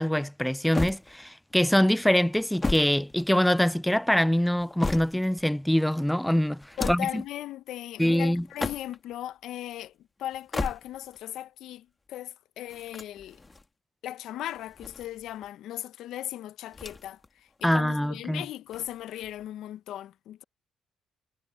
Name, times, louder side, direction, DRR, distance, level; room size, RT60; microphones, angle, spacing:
voice 1, 0.0-7.2 8.0-8.4 17.6-18.4, equal, 5° left, 0.3 m, -24 dB
sound 1, 0.7-1.5 2.3-3.7 4.4-5.4 6.6-7.2 8.4-9.1 10.3-11.2 12.7-13.7 14.6-15.5 16.7-17.3 17.6-17.7 18.7-19.5, left 3 dB, 20° left, 1.7 m, -35 dB
voice 2, 6.8-13.4 14.0-20.4, left 13 dB, 80° left, 0.5 m, -37 dB
cardioid pair, 90°, 0 cm